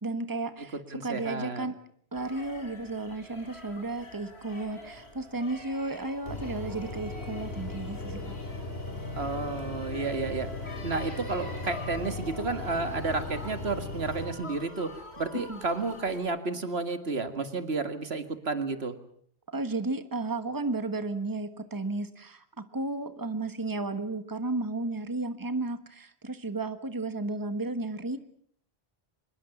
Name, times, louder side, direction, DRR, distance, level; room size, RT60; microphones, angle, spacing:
voice 1, 0.0-1.7 2.1-8.4 15.3-15.6 19.5-28.2, right 2 dB, 20° right, 10 dB, 1.5 m, -33 dB
voice 2, 0.9-1.7 9.2-10.5 10.8-18.9, right 3 dB, 75° right, 9 dB, 2.2 m, -31 dB
sound 1, 2.1-16.2, left 1 dB, 90° left, 4.8 m, -46 dB
sound 2, 6.3-14.3, left 3 dB, 70° left, 4.9 m, -38 dB
25.0 x 21.5 x 7.2 m, 0.63 s
omnidirectional pair, 1.1 m